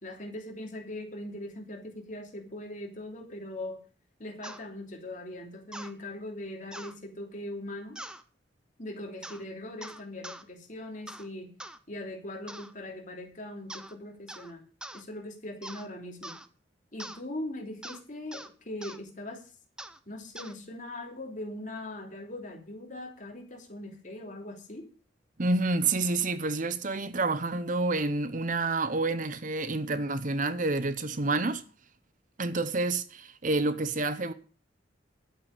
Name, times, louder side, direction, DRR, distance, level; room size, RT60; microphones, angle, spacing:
voice 1, 0.0-3.8 4.2-8.0 8.8-11.5 11.9-14.6 14.9-16.4 16.9-19.5 20.1-24.9, left 1 dB, 40° left, 3.0 m, -40 dB
sound 1, 4.4-4.6 5.7-5.9 6.7-7.0 7.9-8.2 9.2-9.4 9.8-10.4 11.1-11.3 11.6-11.8 12.5-12.7 13.7-13.9 14.3-14.5 14.8-15.0 15.6-15.9 16.2-16.5 17.0-17.2 17.8-18.0 18.3-18.5 18.8-19.0 19.8-20.0 20.3-20.5, right 1 dB, 5° right, 0.7 m, -43 dB
voice 2, 25.4-31.6 32.4-34.3, right 3 dB, 40° right, 0.7 m, -28 dB
11.5 x 8.6 x 6.6 m
head